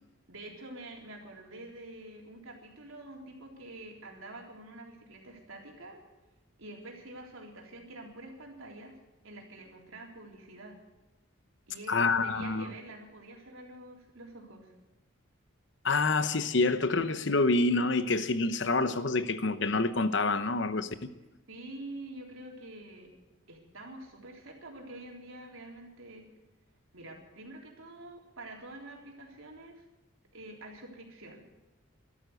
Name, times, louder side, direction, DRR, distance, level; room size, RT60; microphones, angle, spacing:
voice 1, 0.3-6.0 6.6-9.0 9.2-10.8 11.7-14.7 21.5-23.1 23.5-26.2 26.9-29.8 30.3-31.4, right 2 dB, 80° right, 3.9 m, -47 dB
voice 2, 11.9-12.7 15.8-21.1, left 3 dB, 60° left, 1.0 m, -27 dB
13.5 x 12.5 x 8.0 m
head